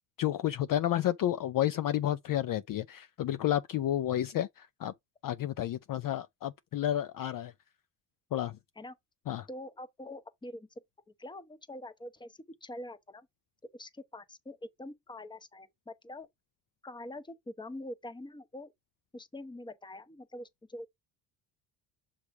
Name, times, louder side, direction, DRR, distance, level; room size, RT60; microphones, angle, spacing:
voice 1, 0.2-4.9 5.2-7.5 8.3-8.6 9.3-9.5, left 12 dB, 45° left, 0.5 m, -31 dB
voice 2, 9.5-10.7 11.2-13.3 13.7-16.3 16.8-18.7 19.1-20.9, left 1 dB, 10° left, 0.8 m, -44 dB
7.1 x 3.1 x 4.7 m
cardioid pair, 100°, 47 cm